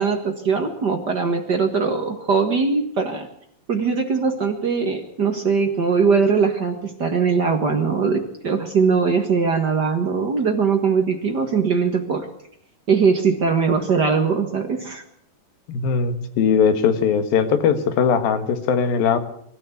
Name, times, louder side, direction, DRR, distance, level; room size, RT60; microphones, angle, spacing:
voice 1, 0.0-3.3 3.7-12.3 12.9-15.0, right 5 dB, 80° right, 4 dB, 0.9 m, -21 dB
voice 2, 15.7-19.2, left 6 dB, 65° left, 10 dB, 3.2 m, -20 dB
24.0 x 13.5 x 8.4 m, 0.68 s
omnidirectional pair, 4.7 m